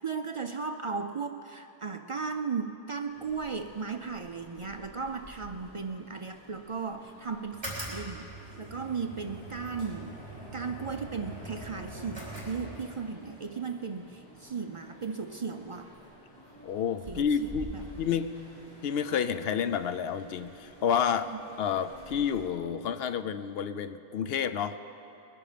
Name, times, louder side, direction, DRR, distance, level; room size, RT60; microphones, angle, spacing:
voice 1, 0.0-8.3 8.6-10.2 10.5-15.9 17.1-17.8 21.2-21.4, right 5 dB, 45° right, 6 dB, 0.4 m, -36 dB
sound 1, 3.1-22.5, equal, 20° left, 4.1 m, -51 dB
sound 2, 7.5-13.1, right 1 dB, 25° right, 4.1 m, -42 dB
voice 2, 16.6-17.7 18.0-18.4 18.8-21.3 21.6-24.8, left 7 dB, 70° left, 11 dB, 0.8 m, -29 dB
21.0 x 11.0 x 5.0 m, 2.9 s
omnidirectional pair, 1.1 m